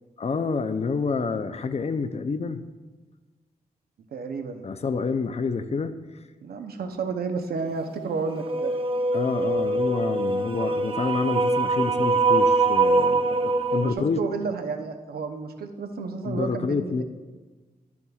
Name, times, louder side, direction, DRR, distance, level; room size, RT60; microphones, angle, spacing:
voice 1, 0.2-2.6 4.6-6.0 9.1-14.2 16.2-17.0, left 4 dB, 40° left, 10 dB, 0.5 m, -28 dB
voice 2, 4.1-4.6 6.4-8.8 13.7-17.0, right 4 dB, 75° right, 6 dB, 0.7 m, -31 dB
sound 1, 8.3-13.9, right 3 dB, 35° right, 0.6 m, -23 dB
9.7 x 7.0 x 2.4 m, 1.3 s
cardioid pair, 60°, 16 cm